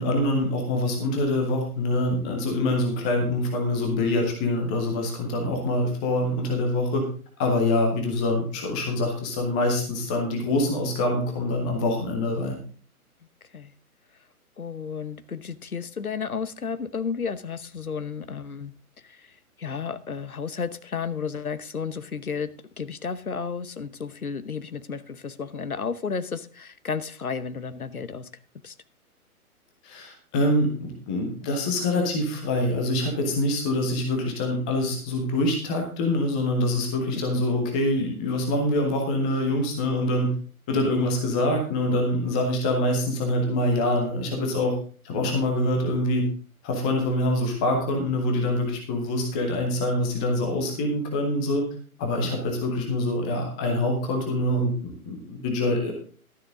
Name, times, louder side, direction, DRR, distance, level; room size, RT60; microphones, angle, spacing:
voice 1, 0.0-7.0 7.4-12.6 29.8-40.3 40.7-44.7 45.0-46.2 46.6-51.6 52.0-55.9, left 1 dB, 5° left, 0.5 m, -25 dB
voice 2, 14.6-18.7 19.0-22.5 22.8-28.3 28.6-28.7 37.1-37.2 45.2-45.4 52.2-52.4, left 6 dB, 70° left, 1.1 m, -32 dB
12.0 x 10.5 x 3.8 m
figure-of-eight pair, 125°, 45 cm